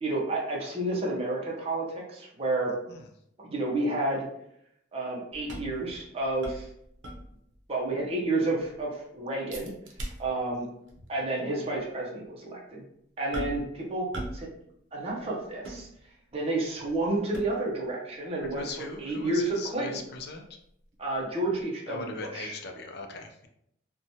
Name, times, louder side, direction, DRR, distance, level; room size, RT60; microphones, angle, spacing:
voice 1, 0.0-2.7 3.4-4.3 4.9-6.7 7.7-9.7 10.2-10.7 11.1-12.8 13.2-14.1 14.3-14.5 14.9-15.9 16.3-20.0 21.0-22.6, right 2 dB, 30° right, -3 dB, 0.5 m, -30 dB
sound 1, 5.3-7.6 8.0-8.1 8.4-8.8 9.5-10.6 10.9-11.1 11.7-11.9 13.3-13.8 14.1-14.5 14.8-16.4 16.8-17.8 18.4-21.2 21.6-21.7, right 1 dB, 75° right, 0.6 m, -41 dB
voice 2, 18.5-20.5 21.9-23.5, left 3 dB, 55° left, 4 dB, 0.4 m, -39 dB
2.9 x 2.2 x 2.6 m, 0.74 s
head